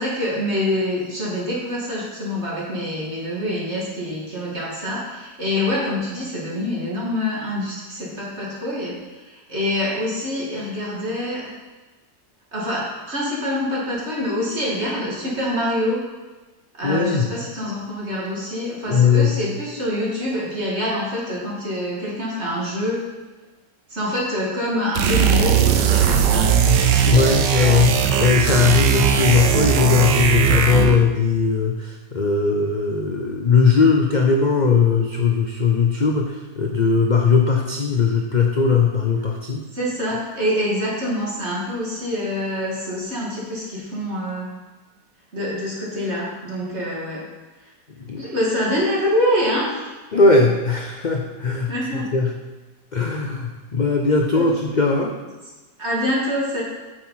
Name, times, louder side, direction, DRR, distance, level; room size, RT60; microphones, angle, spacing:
voice 1, 0.0-8.9 9.5-11.5 12.5-16.0 16.8-23.0 23.9-26.5 39.7-44.5 45.3-47.2 48.2-49.8 51.7-52.1 54.3-54.5 55.8-56.6, left 1 dB, 40° right, -5 dB, 2.7 m, -25 dB
voice 2, 16.8-17.3 18.9-19.3 27.0-39.6 48.1-48.2 50.1-52.3 52.9-55.1, left 5 dB, 55° left, 2 dB, 0.5 m, -19 dB
sound 1, 25.0-31.1, right 8 dB, 90° right, 1.4 m, -18 dB
9.2 x 6.6 x 5.8 m, 1.2 s
omnidirectional pair, 1.9 m